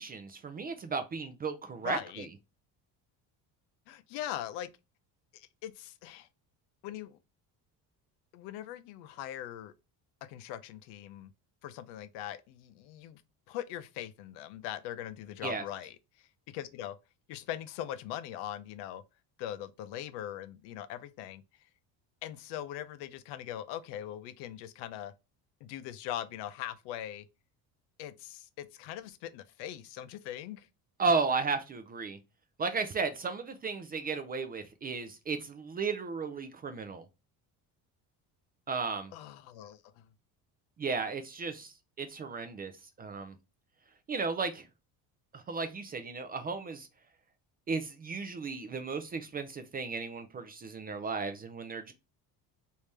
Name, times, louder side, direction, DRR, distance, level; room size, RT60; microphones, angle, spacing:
voice 1, 0.0-2.3 15.4-15.6 31.0-32.2 32.6-37.0 38.7-39.1 40.8-41.7 42.0-42.7 43.0-43.4 44.1-44.7 45.3-46.9 47.7-51.9, right 4 dB, 25° right, 0.3 m, -34 dB
voice 2, 1.8-2.3 3.9-4.7 5.3-6.3 6.8-7.2 8.3-9.7 10.2-11.3 11.6-13.2 13.5-17.0 17.3-19.0 19.4-21.4 22.2-25.1 25.6-27.3 28.0-30.7 39.1-40.0, left 11 dB, 90° left, 0.6 m, -41 dB
3.3 x 2.7 x 3.2 m
cardioid pair, 140°, 40 cm